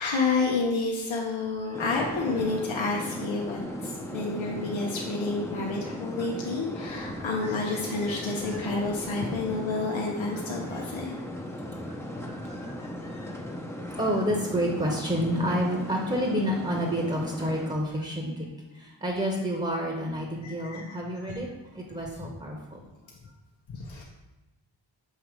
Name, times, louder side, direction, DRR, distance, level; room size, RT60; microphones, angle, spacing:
voice 1, 0.0-11.1 12.4-13.3 20.4-20.8 21.2-21.4 23.7-24.0, left 3 dB, 90° left, -2 dB, 0.8 m, -30 dB
sound 1, 1.7-17.7, equal, 5° left, 0.6 m, -37 dB
voice 2, 12.3-12.7 13.9-18.4 18.8-22.8, equal, 15° right, 0 dB, 1.0 m, -29 dB
6.6 x 3.0 x 4.9 m, 1.0 s
cardioid pair, 65°, 45 cm